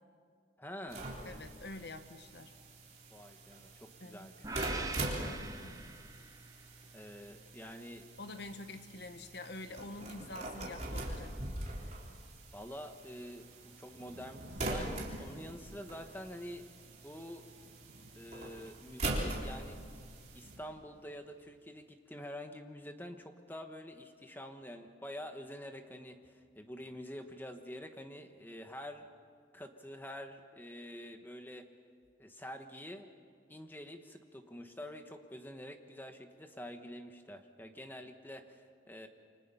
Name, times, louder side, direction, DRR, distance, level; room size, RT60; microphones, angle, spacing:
voice 1, 0.6-1.1 3.1-4.9 5.1-5.6 6.9-8.1 12.5-16.6 17.0-17.4 18.1-19.8 20.3-29.1 29.5-31.7 32.2-33.1 33.5-39.1, equal, 10° left, 6 dB, 1.2 m, -47 dB
sound 1, 0.9-20.6, right 1 dB, 35° right, 3.7 m, -43 dB
voice 2, 1.2-2.5 4.0-4.3 5.2-5.9 8.2-11.4, left 2 dB, 60° left, 8 dB, 1.3 m, -47 dB
sound 2, 4.4-6.6, right 3 dB, 20° right, 0.9 m, -43 dB
Thunder / Rain, 13.1-21.5, right 1 dB, 70° right, 2.3 m, -54 dB
28.5 x 25.5 x 5.6 m, 2.1 s
head